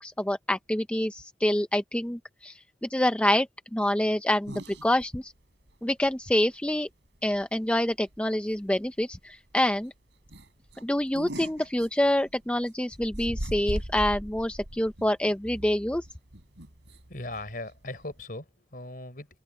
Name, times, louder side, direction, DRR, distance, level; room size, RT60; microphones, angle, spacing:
voice 1, 0.0-5.3 5.8-6.9 7.2-9.9 10.8-16.1, left 1 dB, 5° left, 0.5 m, -27 dB
sound 1, 4.4-5.2 5.6-5.7 6.0-6.1 7.3-7.6 7.9-8.2 8.6-8.7 9.0-9.1 9.5-9.7 10.2-12.5 12.9-18.2, right 1 dB, 85° right, 4.6 m, -39 dB
voice 2, 17.1-19.4, left 2 dB, 50° left, 4.1 m, -39 dB
open air
head